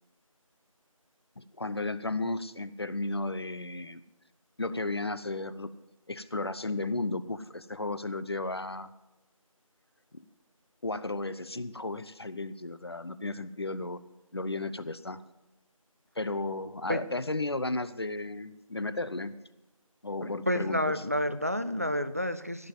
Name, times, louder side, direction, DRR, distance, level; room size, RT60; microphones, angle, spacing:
voice 1, 1.4-4.0 4.6-5.7 6.1-8.9 10.1-10.2 10.8-14.0 14.3-15.2 16.2-19.3 20.0-21.0, left 2 dB, 45° left, 15 dB, 0.6 m, -34 dB
voice 2, 20.5-22.7, equal, 25° right, 13 dB, 0.4 m, -29 dB
16.0 x 5.4 x 9.0 m, 0.98 s
figure-of-eight pair, 170°, 18 cm